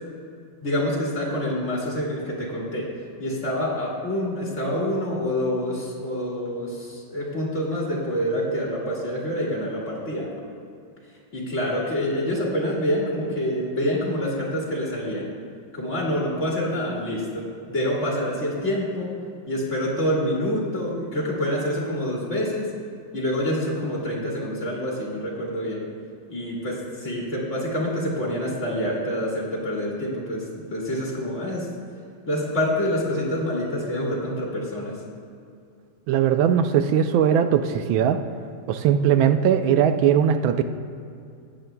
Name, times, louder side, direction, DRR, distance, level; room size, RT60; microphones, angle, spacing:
voice 1, 0.6-2.9 3.2-10.3 11.3-15.3 15.7-19.1 19.5-22.7 23.1-25.8 26.3-30.4 30.7-31.7 32.3-34.9, equal, 40° left, -4 dB, 2.1 m, -26 dB
voice 2, 36.1-38.2 38.7-40.6, right 8 dB, 85° right, 9 dB, 1.4 m, -19 dB
15.0 x 9.4 x 2.2 m, 2.4 s
omnidirectional pair, 2.1 m